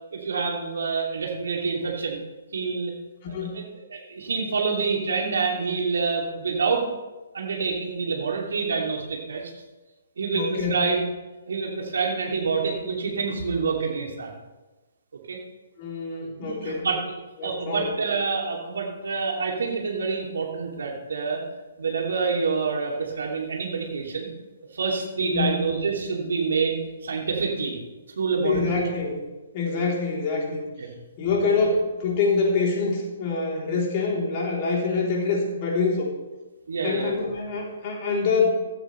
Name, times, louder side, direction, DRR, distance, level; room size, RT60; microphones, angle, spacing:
voice 1, 0.1-2.2 2.5-2.9 3.3-3.6 3.9-6.9 7.3-9.5 10.2-11.0 11.5-14.3 15.3-15.4 16.4-17.0 17.4-21.4 21.8-24.3 24.7-27.8 28.2-28.6 30.8-31.0 31.6-31.7 36.7-37.2, right 4 dB, 60° right, 0 dB, 2.9 m, -27 dB
voice 2, 3.3-3.6 10.3-10.8 15.8-16.9 17.4-17.9 25.2-25.5 28.4-29.2 29.5-30.6 31.2-36.1 36.8-38.5, left 4 dB, 35° left, -1 dB, 3.5 m, -25 dB
15.5 x 13.0 x 3.3 m, 1.1 s
figure-of-eight pair, 125°, 0 cm